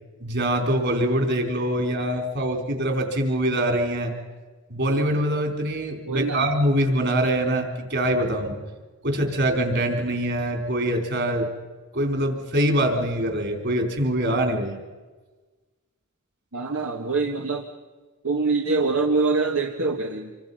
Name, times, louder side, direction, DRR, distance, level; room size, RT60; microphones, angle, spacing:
voice 1, 0.2-4.1 4.7-8.6 9.0-11.5 11.9-14.8, right 1 dB, 50° right, 4 dB, 4.2 m, -24 dB
voice 2, 6.1-6.5 16.5-17.7 18.2-20.3, right 3 dB, 70° right, 2 dB, 1.6 m, -24 dB
27.0 x 24.5 x 5.6 m, 1.3 s
head